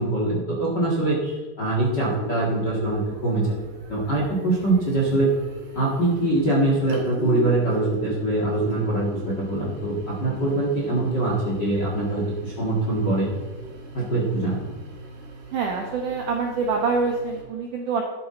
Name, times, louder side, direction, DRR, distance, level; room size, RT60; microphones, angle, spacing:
voice 1, 0.0-3.5 3.9-5.3 5.7-13.3 13.9-14.7, right 2 dB, 40° left, -4 dB, 1.5 m, -23 dB
sound 1, 2.1-17.4, right 2 dB, 90° right, 5.2 m, -38 dB
voice 2, 15.5-18.0, right 4 dB, 75° right, 1 dB, 1.9 m, -25 dB
12.5 x 10.5 x 3.9 m, 1.3 s
omnidirectional pair, 5.2 m